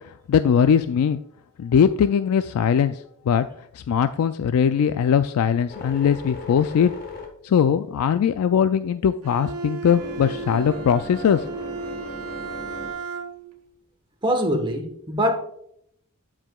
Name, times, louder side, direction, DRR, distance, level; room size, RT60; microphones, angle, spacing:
voice 1, 0.3-1.2 1.6-3.5 3.7-6.9 7.4-11.5, left 7 dB, 75° left, 0.3 m, -20 dB
sound 1, 5.7-8.3 8.8-12.9, left 2 dB, 40° left, 1.2 m, -38 dB
Bowed string instrument, 9.2-13.6, right 4 dB, 80° right, 0.8 m, -34 dB
voice 2, 14.2-15.4, equal, 20° right, 1.1 m, -23 dB
13.0 x 4.8 x 2.3 m
head